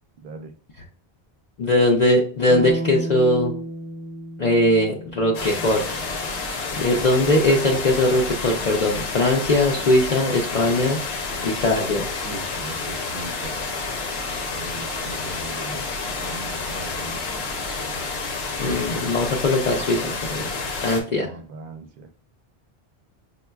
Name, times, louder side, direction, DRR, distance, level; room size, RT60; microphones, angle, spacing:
voice 1, 1.6-3.5 4.4-5.8 6.8-11.0 11.4-12.1 18.6-20.5 20.8-21.3, left 1 dB, 55° left, -1 dB, 0.5 m, -20 dB
sound 1, 2.5-6.5, right 1 dB, 10° right, 0.5 m, -33 dB
sound 2, 5.3-21.0, left 4 dB, 80° left, 0.9 m, -29 dB
voice 2, 12.2-13.6 14.5-15.8 16.2-17.4 21.2-22.1, right 3 dB, 65° right, 7 dB, 0.7 m, -39 dB
5.1 x 2.2 x 2.2 m, 0.43 s
omnidirectional pair, 1.0 m